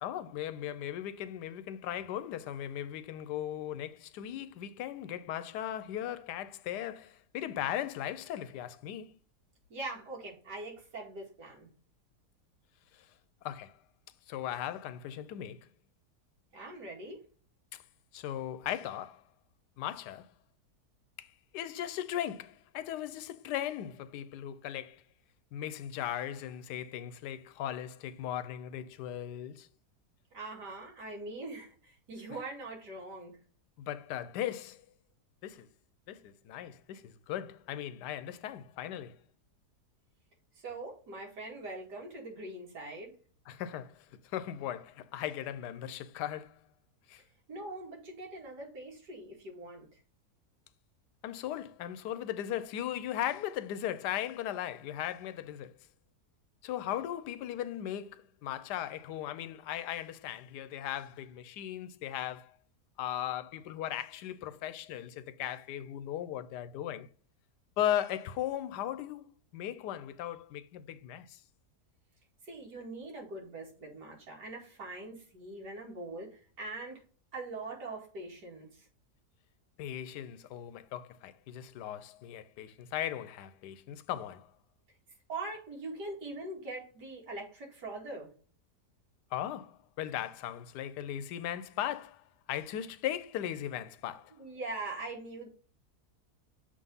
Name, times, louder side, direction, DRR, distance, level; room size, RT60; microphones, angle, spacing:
voice 1, 0.0-9.2 12.9-13.1 13.4-13.8 14.3-15.7 17.7-17.8 18.1-19.2 19.8-20.3 21.2-25.0 25.5-29.7 33.8-34.8 35.4-35.7 36.1-39.2 43.5-46.6 47.1-47.2 51.2-55.7 56.6-62.5 63.0-67.1 67.8-69.3 69.5-71.4 79.8-84.5 89.3-94.3, left 11 dB, 90° left, 1.2 m, -38 dB
voice 2, 9.7-11.7 16.5-17.2 30.3-33.3 40.5-43.1 47.5-50.0 72.4-77.0 77.3-78.9 85.3-88.3 94.3-95.5, right 2 dB, 90° right, 2.8 m, -42 dB
6.9 x 3.7 x 5.3 m
omnidirectional pair, 1.7 m